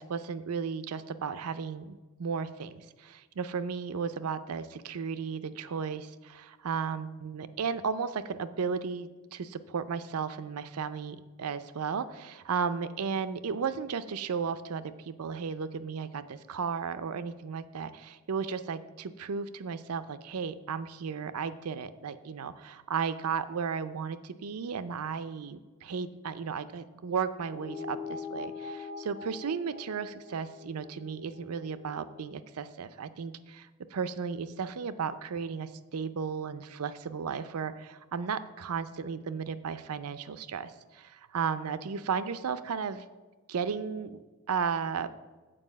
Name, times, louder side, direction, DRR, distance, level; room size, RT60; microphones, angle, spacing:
voice 1, 0.0-43.0 43.5-44.2 44.5-45.1, right 6 dB, 90° right, 13 dB, 0.5 m, -34 dB
sound 1, 27.4-32.2, left 5 dB, 65° left, 2.9 m, -42 dB
7.7 x 4.7 x 7.2 m, 1.3 s
head